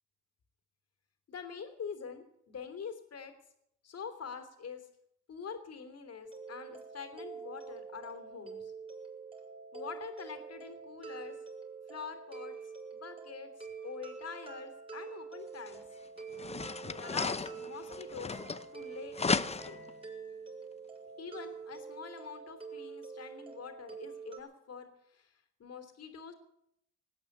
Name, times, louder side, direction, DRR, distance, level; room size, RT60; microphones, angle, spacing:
voice 1, 1.3-3.3 3.8-4.9 5.3-8.7 9.7-11.4 11.9-12.6 12.9-15.8 16.8-18.4 18.7-19.9 21.2-26.3, left 6 dB, 55° left, 7 dB, 3.1 m, -45 dB
sound 1, 6.2-24.4, right 5 dB, 20° right, 5.6 m, -46 dB
sound 2, 15.7-15.8 16.3-18.8 19.1-19.9, left 4 dB, 20° left, 0.7 m, -34 dB
18.5 x 8.8 x 8.6 m, 0.75 s
cardioid pair, 90°, 30 cm